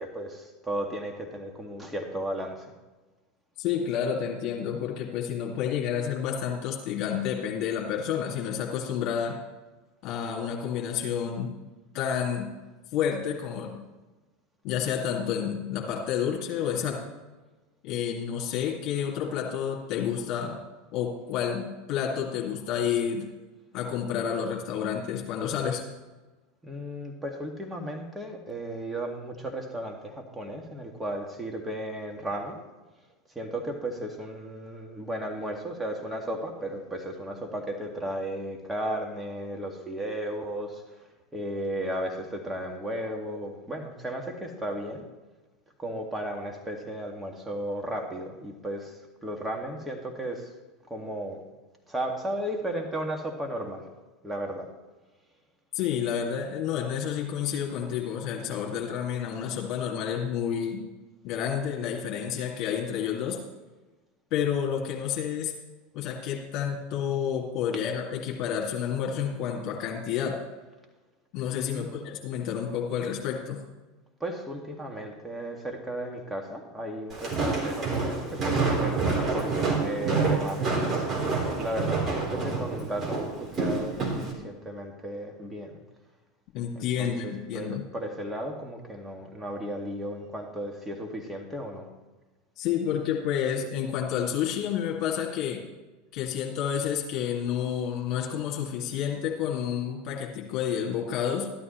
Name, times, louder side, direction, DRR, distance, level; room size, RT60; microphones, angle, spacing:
voice 1, 0.0-2.7 26.6-32.6 33.4-41.1 41.3-45.1 45.8-50.5 50.9-51.4 51.9-53.9 54.2-54.7 71.7-72.1 74.2-85.8 86.7-91.9, right 1 dB, 10° right, 2 dB, 2.1 m, -35 dB
voice 2, 3.6-9.4 10.0-11.5 11.9-12.5 12.9-13.8 14.6-17.0 17.8-20.6 20.9-23.3 23.7-25.8 55.7-60.8 61.2-63.4 64.3-65.5 65.9-70.4 71.3-73.6 86.5-87.9 92.6-95.6 96.1-101.5, left 8 dB, 50° left, -2 dB, 2.5 m, -30 dB
Walk footsteps, 77.1-84.3, right 4 dB, 35° right, 3.9 m, -28 dB
13.5 x 12.5 x 3.2 m, 1.2 s
hypercardioid pair, 85°, 0 cm